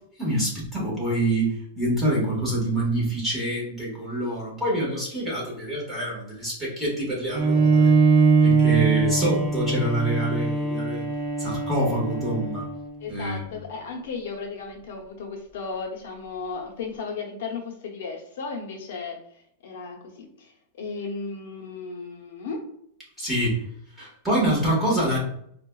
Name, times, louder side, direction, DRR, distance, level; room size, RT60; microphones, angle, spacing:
voice 1, 0.2-7.9 8.4-11.0 11.4-12.7 13.1-13.4 23.2-23.6 24.0-25.2, right 1 dB, 5° right, -6 dB, 1.5 m, -26 dB
Bowed string instrument, 7.3-13.0, right 4 dB, 35° right, 0.7 m, -22 dB
voice 2, 13.0-22.6, left 4 dB, 65° left, 1 dB, 0.8 m, -35 dB
4.6 x 2.4 x 2.3 m, 0.70 s
supercardioid pair, 155°, 0 cm